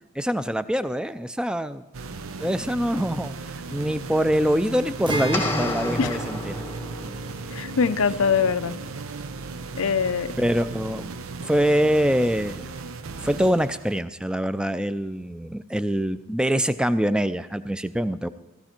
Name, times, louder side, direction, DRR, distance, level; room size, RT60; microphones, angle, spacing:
voice 1, 0.2-1.8 2.4-6.6 10.4-11.1 11.4-12.7 13.2-18.3, equal, 5° right, 12 dB, 0.4 m, -24 dB
sound 1, 1.9-14.0, right 4 dB, 80° right, 0.7 m, -36 dB
Acoustic guitar, 5.0-10.5, right 1 dB, 25° right, 0.9 m, -34 dB
sound 2, 5.3-7.2, left 2 dB, 10° left, 0.9 m, -30 dB
voice 2, 7.5-8.8 9.8-10.3, left 6 dB, 85° left, 14 dB, 0.6 m, -23 dB
15.5 x 15.0 x 4.4 m, 1.0 s
head